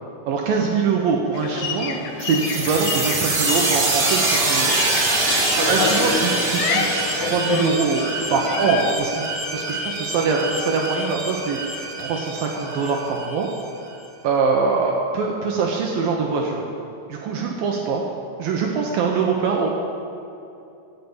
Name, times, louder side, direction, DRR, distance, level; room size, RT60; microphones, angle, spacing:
voice 1, 0.3-4.8 5.6-9.2 9.5-13.5 14.2-16.7 17.1-18.0 18.4-19.7, right 5 dB, 70° right, 0 dB, 2.7 m, -23 dB
sound 1, 1.3-8.9, left 6 dB, 70° left, 2.0 m, -28 dB
sound 2, 2.2-13.6, right 2 dB, 40° right, 2.9 m, -24 dB
18.5 x 7.0 x 8.1 m, 2.7 s
omnidirectional pair, 4.5 m